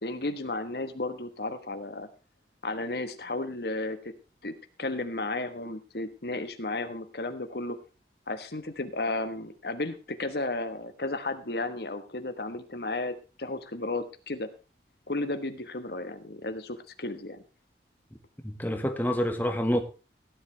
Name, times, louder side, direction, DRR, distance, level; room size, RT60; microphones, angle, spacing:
voice 1, 0.0-2.1 2.6-4.1 4.4-7.8 8.3-14.5 15.1-17.4, left 2 dB, 65° left, 1.4 m, -33 dB
voice 2, 18.4-19.8, equal, 10° left, 1.4 m, -27 dB
16.5 x 10.5 x 3.4 m
head